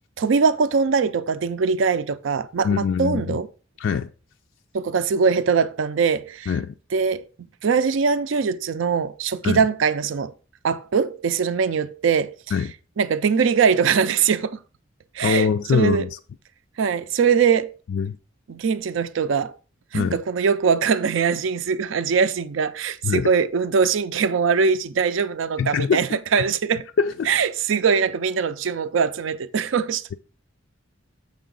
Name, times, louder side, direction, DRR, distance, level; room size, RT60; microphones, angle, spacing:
voice 1, 0.2-3.5 4.7-6.5 6.9-7.2 7.6-10.3 10.6-12.4 13.0-14.6 15.1-16.1 16.8-17.8 18.5-19.5 19.9-26.8 27.3-30.0, right 6 dB, 70° right, 0.4 m, -22 dB
voice 2, 2.6-3.4 3.8-4.1 6.5-6.7 9.4-9.6 12.5-12.7 15.2-16.2 17.9-18.2 19.9-20.2 23.0-23.3 25.6-26.2 27.0-27.3, left 6 dB, 70° left, 0.3 m, -23 dB
7.0 x 5.5 x 3.8 m
head